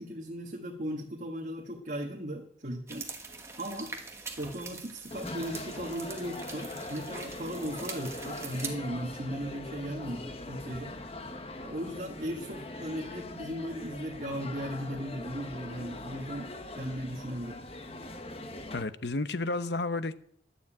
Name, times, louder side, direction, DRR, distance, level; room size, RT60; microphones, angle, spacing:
voice 1, 0.0-3.1 3.6-3.9 4.4-10.9 11.6-17.6, equal, 45° right, 1.4 m, -37 dB
sound 1, 2.9-8.7, right 4 dB, 15° right, 1.5 m, -43 dB
sound 2, 5.1-18.8, left 2 dB, 35° left, 1.1 m, -42 dB
voice 2, 18.7-20.2, left 2 dB, 75° left, 0.8 m, -31 dB
12.0 x 7.1 x 8.6 m
head